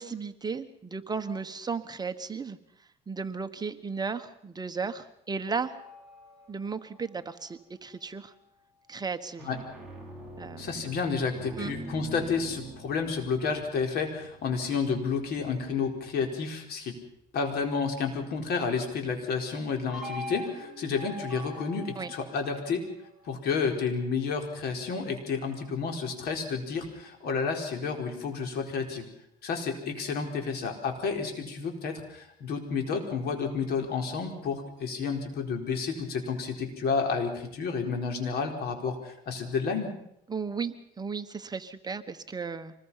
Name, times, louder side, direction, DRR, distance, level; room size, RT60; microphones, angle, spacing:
voice 1, 0.0-2.6 3.1-5.7 6.5-8.3 8.9-9.5 10.4-10.9 11.6-11.7 22.0-22.1 40.3-42.7, right 5 dB, 25° right, 9 dB, 1.2 m, -35 dB
sound 1, 5.5-8.2 9.2-16.0 19.9-24.1, equal, 5° right, 7.6 m, -45 dB
voice 2, 10.6-16.9 17.3-22.9 23.2-29.1 29.4-39.9, left 5 dB, 70° left, 4 dB, 4.6 m, -31 dB
25.5 x 20.5 x 5.7 m, 0.76 s
cardioid pair, 110°, 17 cm